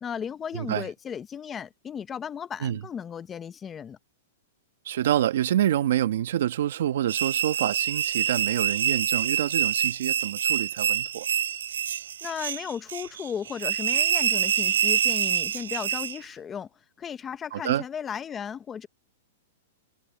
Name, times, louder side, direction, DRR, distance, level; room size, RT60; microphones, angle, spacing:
voice 1, 0.0-4.0 12.2-16.7 17.0-18.9, left 7 dB, 15° left, 0.6 m, -35 dB
voice 2, 0.5-0.9 2.6-2.8 4.8-11.3 17.5-17.8, right 11 dB, 65° right, 1.4 m, -27 dB
sound 1, 7.1-16.2, right 9 dB, 90° right, 0.3 m, -26 dB
hypercardioid pair, 160°, 0 cm